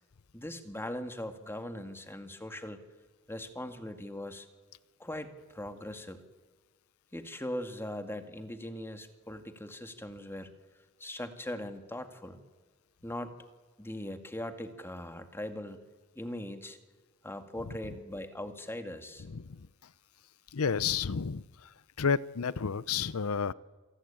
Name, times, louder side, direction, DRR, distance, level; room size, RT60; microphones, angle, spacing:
voice 1, 0.3-2.8 3.3-4.5 5.0-6.2 7.1-10.5 11.0-12.4 13.0-13.4 13.8-15.8 16.2-16.8 17.2-19.3, left 1 dB, 10° left, 7 dB, 2.0 m, -40 dB
voice 2, 19.3-19.7 20.5-21.7 22.0-23.5, left 6 dB, 75° left, 19 dB, 0.7 m, -31 dB
27.0 x 19.0 x 8.7 m, 1.4 s
head